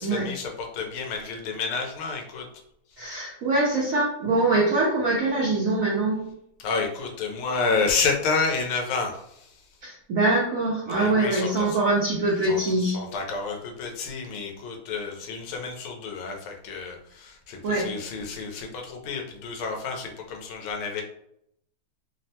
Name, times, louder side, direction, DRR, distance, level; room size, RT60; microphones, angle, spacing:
voice 1, 0.0-2.5 6.6-9.5 10.9-11.8 12.4-21.0, left 4 dB, 90° left, 2 dB, 1.5 m, -30 dB
voice 2, 3.0-6.2 9.8-13.0 17.6-17.9, right 2 dB, 70° right, -5 dB, 0.8 m, -23 dB
3.5 x 2.1 x 2.7 m, 0.73 s
omnidirectional pair, 2.3 m